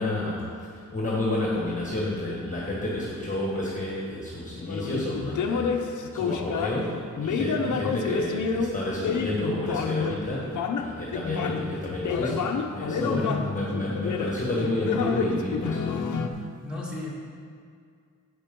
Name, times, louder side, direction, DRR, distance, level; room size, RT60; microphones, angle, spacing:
voice 1, 0.0-16.1, left 1 dB, 25° left, -4 dB, 1.5 m, -30 dB
sound 1, 4.6-6.8 7.2-10.2 10.5-16.3, left 5 dB, 70° left, 0.8 m, -29 dB
voice 2, 7.5-7.8 13.0-13.4 16.6-17.1, left 3 dB, 5° right, -7 dB, 2.3 m, -33 dB
9.9 x 8.3 x 5.3 m, 2.2 s
wide cardioid pair, 165°, 31 cm